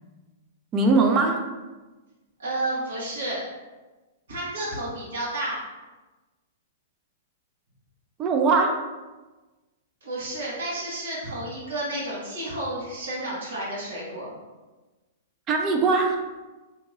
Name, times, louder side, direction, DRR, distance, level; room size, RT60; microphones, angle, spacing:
voice 1, 0.7-1.5 8.2-8.8 15.5-16.2, right 3 dB, 25° right, 3 dB, 0.3 m, -21 dB
voice 2, 2.4-3.4 4.3-5.6 10.0-14.3, right 1 dB, 85° right, -7 dB, 1.4 m, -31 dB
2.9 x 2.7 x 2.5 m, 1.2 s
hypercardioid pair, 140°, 0 cm